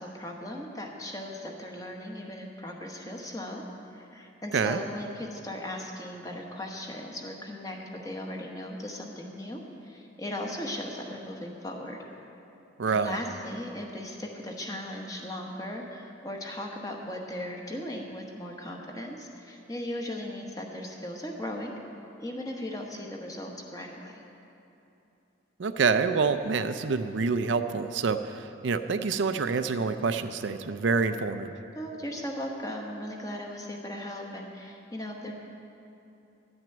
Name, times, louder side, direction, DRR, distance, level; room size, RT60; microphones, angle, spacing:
voice 1, 0.0-3.6 3.9-7.8 8.0-12.0 12.9-21.7 22.2-24.2 31.7-35.3, left 1 dB, 20° left, 1 dB, 1.1 m, -37 dB
voice 2, 12.8-13.2 25.6-31.5, right 4 dB, 70° right, 10 dB, 0.5 m, -27 dB
12.0 x 6.1 x 8.9 m, 2.9 s
head